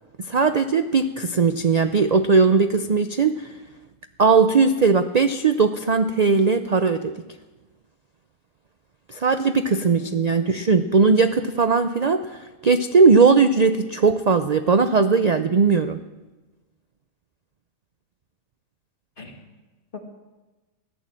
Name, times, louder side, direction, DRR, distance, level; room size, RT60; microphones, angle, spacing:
voice 1, 0.3-3.5 4.2-7.2 9.1-16.0, right 4 dB, 50° right, 9 dB, 0.4 m, -19 dB
voice 2, 10.0-10.7 19.2-19.5 19.9-20.0, left 5 dB, 35° left, 2 dB, 2.2 m, -39 dB
16.5 x 11.0 x 7.6 m, 1.2 s
omnidirectional pair, 1.5 m